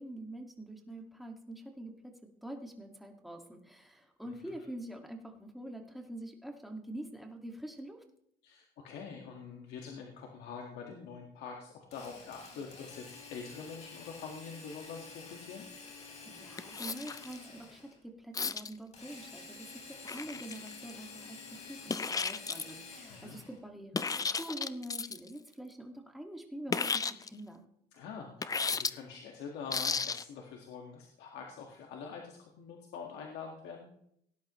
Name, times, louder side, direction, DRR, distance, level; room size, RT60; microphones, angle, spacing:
voice 1, 0.0-8.0 16.3-27.6, right 1 dB, ahead, 2 dB, 2.0 m, -45 dB
voice 2, 4.3-4.7 8.4-15.7 23.1-23.4 27.9-33.9, left 5 dB, 85° left, 1 dB, 1.8 m, -45 dB
Drill, 11.9-18.0 18.9-23.6, left 4 dB, 40° left, 4.3 m, -50 dB
sound 1, 16.6-17.4 18.3-18.7 20.0-20.9 21.9-22.8 23.9-25.3 26.7-27.3 28.4-28.9 29.7-30.2, left 5 dB, 20° left, 0.5 m, -33 dB
18.0 x 10.5 x 3.1 m, 0.73 s
cardioid pair, 110°, 17 cm